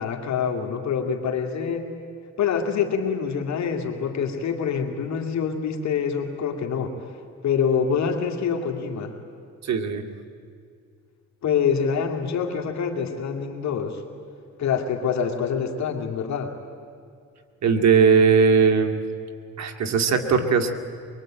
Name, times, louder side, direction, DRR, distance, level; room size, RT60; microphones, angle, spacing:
voice 1, 0.0-1.9 2.4-7.1 7.4-9.1 11.4-14.0 14.6-16.5, left 6 dB, 65° left, 3 dB, 2.5 m, -26 dB
voice 2, 9.6-10.0 17.6-19.0 19.6-20.7, right 5 dB, 60° right, 5 dB, 2.2 m, -19 dB
23.5 x 23.0 x 8.9 m, 2.3 s
cardioid pair, 90°, 30 cm